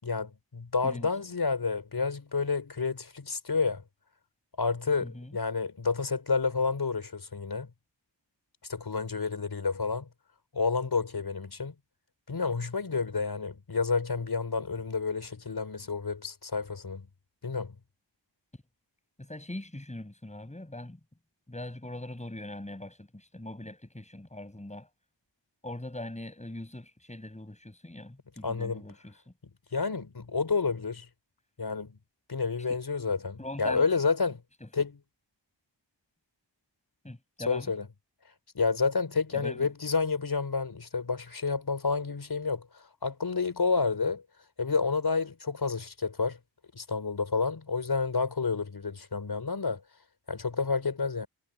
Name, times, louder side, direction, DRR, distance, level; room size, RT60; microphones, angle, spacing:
voice 1, 0.0-3.8 4.6-7.7 8.7-10.1 10.5-11.7 12.3-17.1 17.4-17.7 28.4-28.8 29.7-31.1 31.6-32.0 32.3-34.4 34.7-35.0 37.5-37.8 38.5-44.2 44.6-46.4 46.7-49.8 50.3-51.3, left 4 dB, 55° left, 4.7 m, -30 dB
voice 2, 5.0-5.4 18.5-18.6 19.2-21.0 21.5-24.9 25.6-29.3 32.7-32.8 33.4-33.9 34.6-34.9 37.0-37.7 39.3-39.7, left 1 dB, 15° left, 7.6 m, -41 dB
wide cardioid pair, 85°, 45 cm